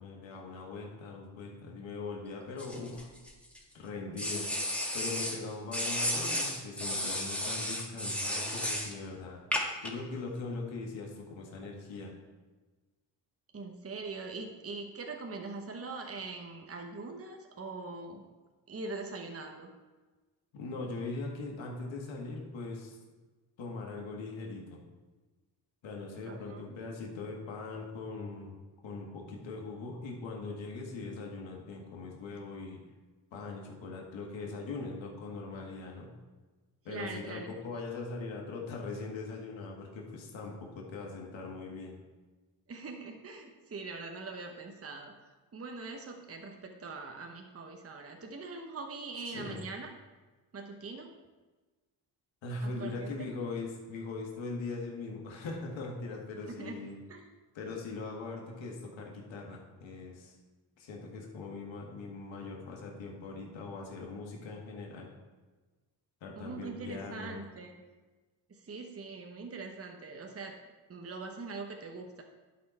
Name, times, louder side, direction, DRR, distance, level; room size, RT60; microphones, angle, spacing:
voice 1, 0.0-3.1 3.7-4.5 4.9-9.4 9.8-12.1 20.5-23.0 23.6-24.8 25.8-28.5 28.8-32.8 33.3-36.1 36.9-42.0 49.3-49.6 52.4-57.0 57.5-60.3 60.8-65.1 66.2-67.4, left 3 dB, 65° left, 0 dB, 1.9 m, -41 dB
sound 1, 2.6-3.6 4.2-5.4 5.7-8.9 9.5-9.9, left 1 dB, ahead, 1.9 m, -33 dB
voice 2, 13.5-18.2 18.7-19.7 26.2-26.8 36.9-37.5 42.7-45.1 45.5-49.9 50.5-51.1 52.6-53.1 56.4-56.8 57.1-57.3 66.4-67.8 68.5-70.6 70.9-72.2, right 3 dB, 30° right, 3 dB, 1.0 m, -42 dB
11.0 x 4.2 x 4.5 m, 1.3 s
supercardioid pair, 55°, 48 cm